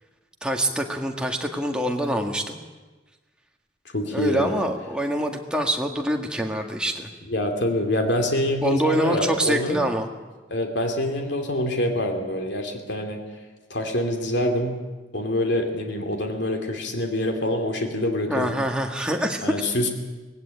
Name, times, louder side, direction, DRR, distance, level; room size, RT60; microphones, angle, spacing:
voice 1, 0.4-2.6 4.1-7.1 8.6-10.1 18.3-19.5, right 1 dB, 5° right, 2 dB, 1.9 m, -25 dB
voice 2, 3.9-4.6 7.3-9.8 10.5-13.2 13.7-14.8 15.1-18.5 19.4-19.9, left 1 dB, 80° left, 4 dB, 2.6 m, -25 dB
19.0 x 17.0 x 9.1 m, 1.2 s
head